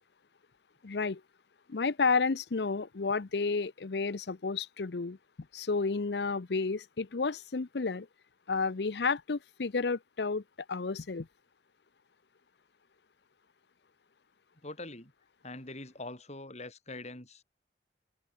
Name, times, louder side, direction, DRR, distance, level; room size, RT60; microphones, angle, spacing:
voice 1, 0.8-1.2 1.7-5.2 5.5-8.1 8.5-10.4 10.7-11.3, left 4 dB, 65° left, 0.7 m, -31 dB
voice 2, 14.6-15.1 15.4-17.4, left 2 dB, 40° left, 6.6 m, -43 dB
head